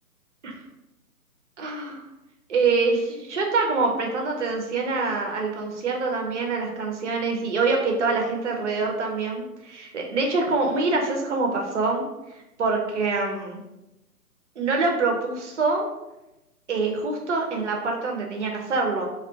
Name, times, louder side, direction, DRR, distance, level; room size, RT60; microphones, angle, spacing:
voice 1, 1.6-2.0 2.5-12.1 12.6-13.6 14.6-15.9 16.7-19.1, right 3 dB, 50° right, 1 dB, 0.6 m, -25 dB
2.3 x 2.2 x 2.6 m, 0.96 s
figure-of-eight pair, 145°, 47 cm